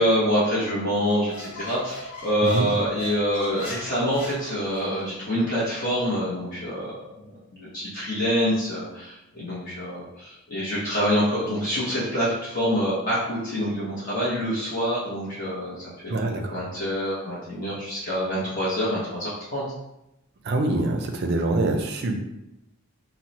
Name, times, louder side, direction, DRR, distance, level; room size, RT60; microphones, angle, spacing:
voice 1, 0.0-6.9 7.3-19.6, equal, 40° left, -9 dB, 0.8 m, -26 dB
Squeak, 1.0-5.1, left 1 dB, 75° left, 1.1 m, -39 dB
voice 2, 16.1-16.6 20.4-22.2, right 2 dB, 50° right, 4 dB, 0.4 m, -25 dB
2.9 x 2.0 x 3.9 m, 0.89 s
head